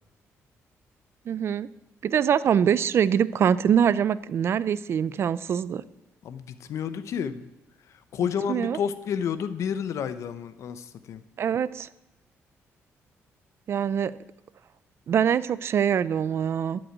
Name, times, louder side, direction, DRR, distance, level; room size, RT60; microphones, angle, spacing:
voice 1, 1.3-1.7 2.0-5.8 8.2-8.8 11.4-11.9 13.7-14.2 15.1-16.8, right 8 dB, 50° right, 17 dB, 0.5 m, -24 dB
voice 2, 6.2-7.4 8.1-11.2, left 7 dB, 65° left, 12 dB, 0.9 m, -30 dB
12.5 x 6.3 x 8.9 m, 0.95 s
cardioid pair, 125°, 5 cm